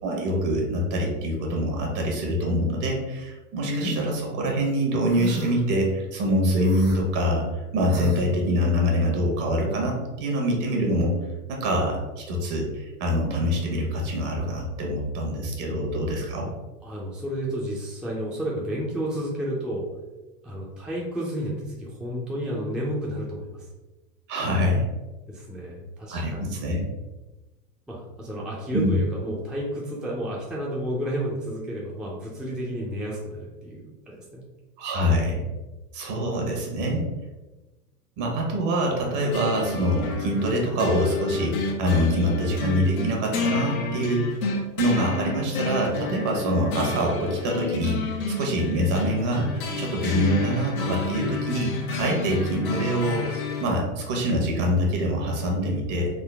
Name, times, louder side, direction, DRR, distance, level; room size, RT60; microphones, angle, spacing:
voice 1, 0.0-11.1 11.5-16.5 24.3-24.9 26.1-26.9 28.7-29.0 34.8-35.4 35.9-37.0 38.2-44.3 44.8-53.2 53.6-56.1, equal, 50° right, 0 dB, 1.2 m, -25 dB
sound 1, 3.6-4.0 5.1-5.6 6.6-7.0 7.9-8.3, right 2 dB, 25° right, 0.8 m, -31 dB
voice 2, 16.8-19.9 20.4-23.7 25.3-26.5 27.9-34.4 36.2-37.0, equal, ahead, -5 dB, 0.6 m, -31 dB
sound 2, 39.3-53.6, left 3 dB, 90° left, 0.8 m, -30 dB
3.8 x 2.1 x 3.4 m, 1.1 s
hypercardioid pair, 110°, 41 cm